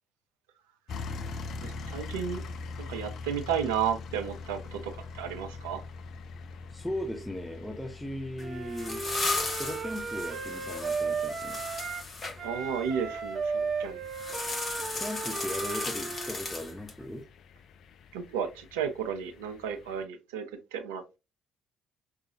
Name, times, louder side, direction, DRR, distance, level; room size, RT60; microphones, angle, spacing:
sound 1, 0.9-20.0, left 4 dB, 55° left, 0.4 m, -44 dB
voice 1, 1.6-2.4 2.9-5.8 12.4-14.0 18.1-20.5 20.7-21.2, right 8 dB, 70° right, 0.5 m, -33 dB
voice 2, 6.7-11.7 14.9-17.2, left 1 dB, 5° left, 0.7 m, -38 dB
sound 2, 8.4-12.4 14.1-17.0, left 3 dB, 35° left, 1.0 m, -35 dB
Wind instrument woodwind instrument, 8.4-12.1 12.4-16.3, right 4 dB, 45° right, 0.7 m, -35 dB
4.9 x 2.3 x 2.7 m
figure-of-eight pair, 45°, 0 cm